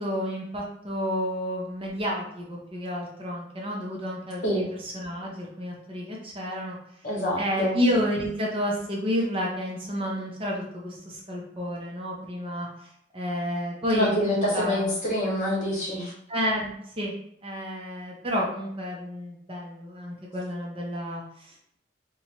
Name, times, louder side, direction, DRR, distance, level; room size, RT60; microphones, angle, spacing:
voice 1, 0.0-6.8 7.4-14.9 16.3-17.1 17.4-21.8, equal, 30° right, -2 dB, 0.6 m, -30 dB
voice 2, 7.0-7.7 13.9-16.1, equal, 45° left, -5 dB, 1.4 m, -26 dB
4.2 x 2.3 x 3.0 m, 0.72 s
head